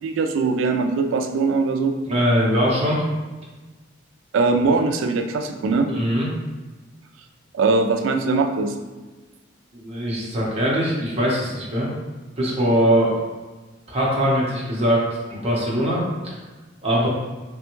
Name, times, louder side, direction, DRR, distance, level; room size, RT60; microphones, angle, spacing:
voice 1, 0.0-1.9 4.3-5.9 7.5-8.7, right 4 dB, 85° right, 6 dB, 0.3 m, -21 dB
voice 2, 2.0-3.0 5.9-6.3 9.7-11.9 12.4-13.1 13.9-16.3 16.8-17.1, equal, 35° right, -5 dB, 0.8 m, -21 dB
3.3 x 2.2 x 3.0 m, 1.2 s
head